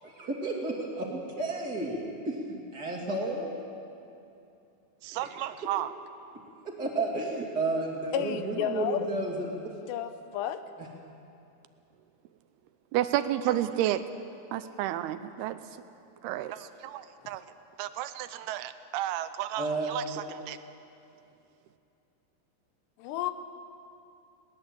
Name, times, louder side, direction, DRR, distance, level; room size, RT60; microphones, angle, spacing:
voice 1, 0.0-3.5 5.2-5.4 6.6-9.5 15.0-15.1 19.6-20.2, right 2 dB, 25° right, -1 dB, 2.6 m, -32 dB
voice 2, 5.0-5.9 12.9-14.0 14.5-15.6 16.2-17.4 17.8-20.0 20.3-20.6, right 13 dB, 80° right, 12 dB, 2.5 m, -31 dB
voice 3, 8.1-9.1 9.9-10.6 23.0-23.3, left 10 dB, 90° left, 10 dB, 3.1 m, -31 dB
20.5 x 18.5 x 7.9 m, 2.7 s
omnidirectional pair, 4.8 m